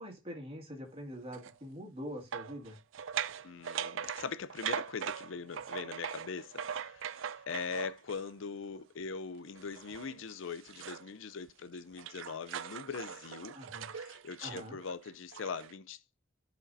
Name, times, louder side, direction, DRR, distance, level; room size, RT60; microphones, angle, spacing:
voice 1, 0.0-2.8 13.5-13.9 14.4-14.8, equal, 30° right, 2.2 m, -44 dB
sound 1, 1.3-1.5 2.3-8.3 9.6-11.1 11.5-15.7, right 8 dB, 70° right, 0.4 m, -41 dB
voice 2, 3.4-13.6 13.9-16.0, left 5 dB, 70° left, 0.5 m, -41 dB
14.0 x 5.0 x 2.6 m
head